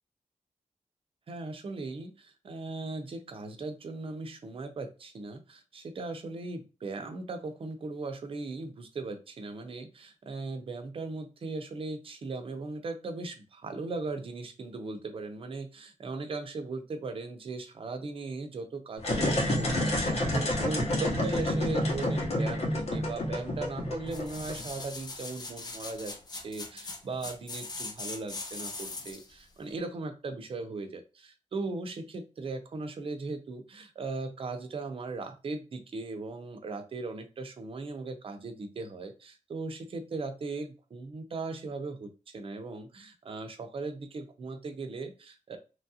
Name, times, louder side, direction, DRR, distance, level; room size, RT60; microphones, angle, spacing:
voice 1, 1.3-45.6, right 3 dB, 45° right, 7 dB, 0.5 m, -38 dB
sound 1, 19.0-24.8, left 1 dB, 55° left, 0.9 m, -29 dB
sound 2, 24.1-29.3 29.8-29.9, left 3 dB, 30° left, 0.4 m, -41 dB
3.0 x 2.4 x 2.7 m, 0.31 s
wide cardioid pair, 170°, 13 cm